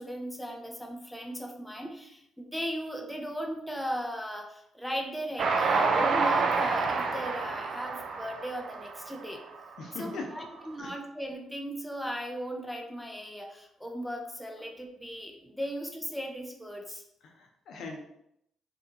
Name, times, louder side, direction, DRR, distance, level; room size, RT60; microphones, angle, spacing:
voice 1, 0.0-9.4 10.0-17.0, equal, 5° left, 1 dB, 0.4 m, -37 dB
Train, 5.4-9.8, right 4 dB, 60° right, 0.3 m, -28 dB
voice 2, 9.8-10.5 10.8-11.0 14.6-14.7 15.6-15.7 17.2-18.0, left 3 dB, 70° left, 2 dB, 0.5 m, -41 dB
2.8 x 2.2 x 2.6 m, 0.76 s
cardioid pair, 90°, 0 cm